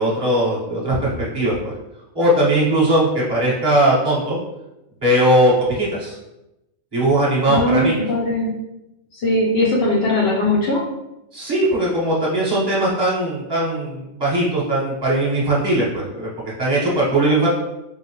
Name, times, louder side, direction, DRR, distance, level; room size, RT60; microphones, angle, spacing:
voice 1, 0.0-1.7 2.1-4.4 5.0-6.1 6.9-8.0 11.3-16.3 16.6-17.5, right 1 dB, 20° right, -7 dB, 1.2 m, -19 dB
voice 2, 7.5-8.5 9.1-10.8, left 1 dB, 60° left, -4 dB, 0.8 m, -19 dB
4.5 x 2.0 x 3.0 m, 0.92 s
omnidirectional pair, 1.3 m